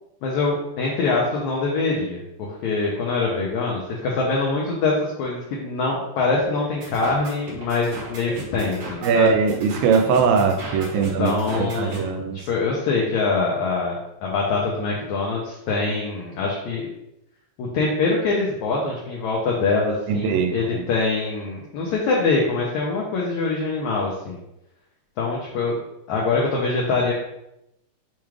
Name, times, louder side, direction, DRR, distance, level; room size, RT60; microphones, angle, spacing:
voice 1, 0.2-9.3 11.0-12.2 12.5-16.9 17.6-24.4 25.2-25.7 26.1-27.1, left 3 dB, 80° left, -3 dB, 1.6 m, -24 dB
sound 1, 6.8-12.0, right 2 dB, 60° right, 1.7 m, -36 dB
voice 2, 9.0-11.3 11.6-12.4 20.1-20.8, right 6 dB, 85° right, 5 dB, 2.3 m, -21 dB
7.0 x 2.4 x 3.1 m, 0.84 s
omnidirectional pair, 4.1 m